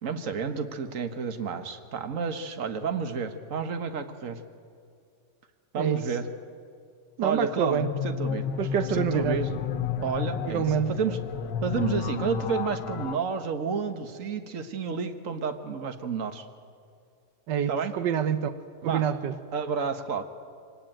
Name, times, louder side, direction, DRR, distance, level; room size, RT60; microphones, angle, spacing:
voice 1, 0.0-4.4 5.7-6.3 7.2-8.4 8.9-9.5 10.0-11.2 11.6-16.4 17.7-17.9 18.8-19.0 19.5-20.2, right 5 dB, 50° right, 8 dB, 1.7 m, -30 dB
voice 2, 7.2-7.9 8.6-9.4 10.5-10.9 17.5-18.6 18.8-19.4, right 8 dB, 85° right, 11 dB, 1.5 m, -27 dB
sound 1, 7.8-13.2, left 7 dB, 90° left, 1.5 m, -31 dB
24.5 x 19.0 x 9.0 m, 2.4 s
omnidirectional pair, 1.8 m